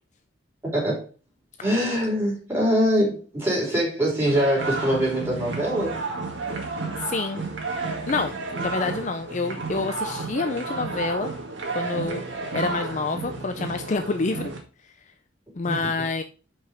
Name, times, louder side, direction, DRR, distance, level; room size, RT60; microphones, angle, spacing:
voice 1, 0.6-1.1 1.6-6.0 15.6-15.8, equal, 10° right, -5 dB, 3.7 m, -23 dB
sound 1, 4.2-14.6, right 3 dB, 70° right, 1.9 m, -32 dB
voice 2, 7.0-7.4 8.1-11.3 11.7-12.2 12.5-14.5 15.6-16.2, left 3 dB, 40° left, 7 dB, 0.5 m, -27 dB
5.6 x 5.4 x 5.0 m, 0.35 s
head